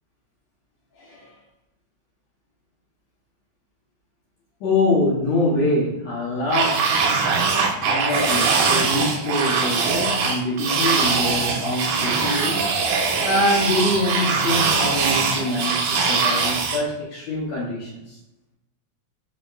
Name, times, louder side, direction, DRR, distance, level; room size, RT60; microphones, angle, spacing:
voice 1, 0.9-1.3 4.6-7.0 7.8-12.6 13.2-18.2, left 1 dB, 70° left, -6 dB, 2.0 m, -24 dB
sound 1, 6.5-16.8, right 5 dB, 85° right, 2.1 m, -22 dB
5.4 x 2.8 x 2.2 m, 0.93 s
omnidirectional pair, 3.5 m